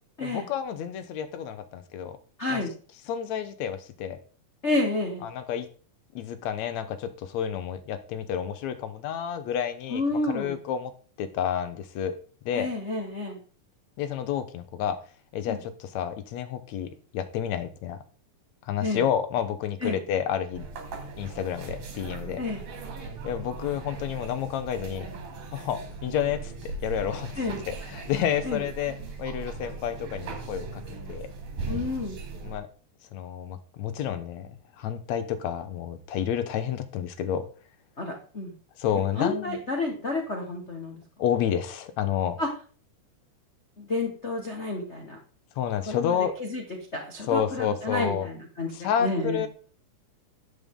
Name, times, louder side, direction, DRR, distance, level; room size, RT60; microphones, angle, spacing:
voice 1, 0.2-2.2 2.5-2.6 3.1-4.2 5.2-5.7 6.2-10.9 11.2-12.2 12.5-12.7 14.0-15.0 15.3-18.0 18.7-20.7 21.2-22.4 23.2-25.1 25.5-30.8 31.1-31.3 32.4-32.7 33.1-37.5 38.8-39.6 41.2-42.4 45.6-46.4 47.3-48.3 48.7-49.5, left 9 dB, 70° left, 11 dB, 2.0 m, -30 dB
voice 2, 2.4-2.7 4.6-5.3 9.9-10.6 12.5-13.4 15.5-15.6 18.8-19.0 19.8-20.0 22.4-22.6 27.4-27.6 28.4-28.6 31.7-32.2 38.0-38.5 39.2-41.0 42.4-42.5 43.8-45.2 45.9-46.6 46.9-49.4, left 2 dB, 50° left, 2 dB, 0.8 m, -30 dB
sound 1, 20.5-32.6, right 3 dB, 85° right, 3.9 m, -38 dB
12.0 x 7.5 x 3.7 m, 0.41 s
omnidirectional pair, 3.6 m